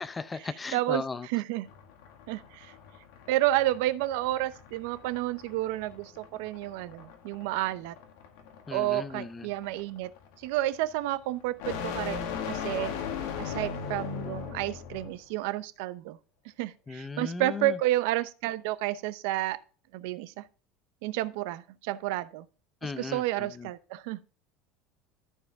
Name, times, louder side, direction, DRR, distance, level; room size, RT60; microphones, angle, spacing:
voice 1, 0.0-1.3 8.7-9.5 16.9-17.8 22.8-23.7, left 4 dB, 15° left, 0.5 m, -37 dB
voice 2, 0.7-1.0 1.3-1.7 2.3-2.7 3.3-7.9 8.7-10.1 10.4-12.2 12.5-12.9 13.4-16.2 16.6-19.6 19.9-20.4 21.0-22.5 22.8-24.2, right 15 dB, 75° right, 0.7 m, -30 dB
sound 1, 1.7-15.2, left 7 dB, 75° left, 1.8 m, -39 dB
13.5 x 4.8 x 3.5 m
cardioid pair, 160°, 0 cm